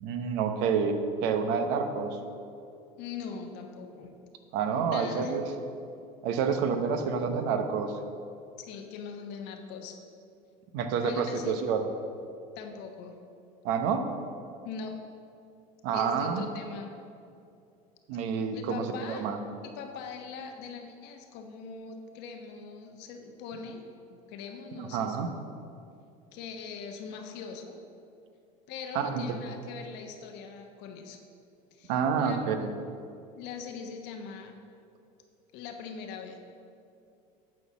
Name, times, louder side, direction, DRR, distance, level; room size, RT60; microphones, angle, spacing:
voice 1, 0.0-2.2 4.5-5.4 6.2-8.0 10.7-11.9 13.6-14.0 15.8-16.5 18.1-19.4 24.7-25.3 28.9-29.3 31.9-32.7, right 6 dB, 65° right, 7 dB, 0.9 m, -28 dB
voice 2, 3.0-4.1 4.9-5.4 8.6-10.0 11.0-11.6 12.5-13.2 14.6-15.0 15.9-17.0 18.5-19.3 19.6-25.3 26.3-27.8 28.7-31.2 31.7-31.9 32.2-32.4 33.3-34.6 35.5-36.4, left 5 dB, 65° left, 4 dB, 1.1 m, -41 dB
8.9 x 4.3 x 7.2 m, 2.5 s
supercardioid pair, 100°, 19 cm